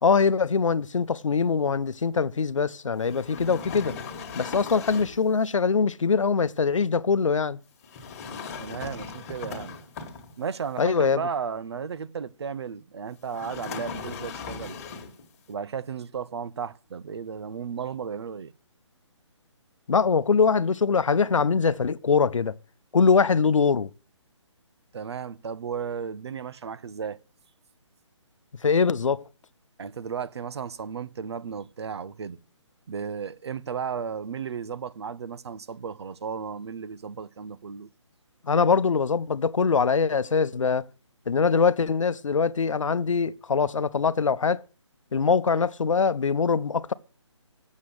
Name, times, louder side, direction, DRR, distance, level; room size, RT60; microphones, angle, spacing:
voice 1, 0.0-3.9 4.4-7.6 10.8-11.2 19.9-22.5 22.9-23.9 28.6-29.2 38.4-40.9 41.3-44.6 45.1-46.9, left 5 dB, 85° left, 0.7 m, -23 dB
sound 1, 3.0-5.3 7.8-10.6 13.3-15.3, left 5 dB, 30° left, 1.8 m, -38 dB
voice 2, 8.6-9.8 10.4-14.8 15.5-18.5 24.9-27.2 29.8-32.4 32.9-37.9 45.5-45.7, right 6 dB, 60° right, 0.8 m, -34 dB
8.5 x 7.4 x 6.4 m
hypercardioid pair, 155°, 16 cm